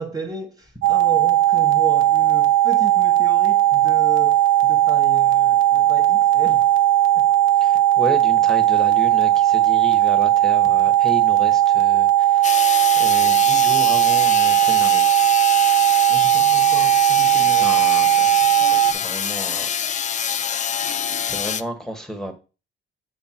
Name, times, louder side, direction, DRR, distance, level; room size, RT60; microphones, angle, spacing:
voice 1, 0.0-6.7 7.2-7.3 16.1-17.8, right 4 dB, 20° right, 0.9 m, -34 dB
sound 1, 0.8-18.9, right 13 dB, 85° right, 0.6 m, -17 dB
voice 2, 7.6-15.3 17.6-19.7 21.2-22.3, right 1 dB, ahead, 1.1 m, -32 dB
sound 2, 12.4-21.6, left 8 dB, 40° left, 0.4 m, -26 dB
7.1 x 3.2 x 4.4 m
cardioid pair, 90°, 20 cm